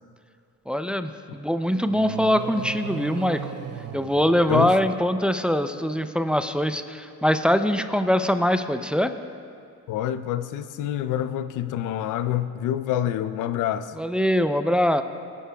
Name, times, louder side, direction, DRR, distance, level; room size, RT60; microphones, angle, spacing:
voice 1, 0.7-3.4 3.9-9.1 14.0-15.0, equal, 5° right, 9 dB, 0.4 m, -23 dB
sound 1, 1.8-5.2, right 8 dB, 55° right, 0.7 m, -37 dB
voice 2, 9.9-13.9, left 11 dB, 90° left, 12 dB, 0.5 m, -27 dB
17.5 x 11.5 x 2.3 m, 2.4 s
cardioid pair, 90°, 30 cm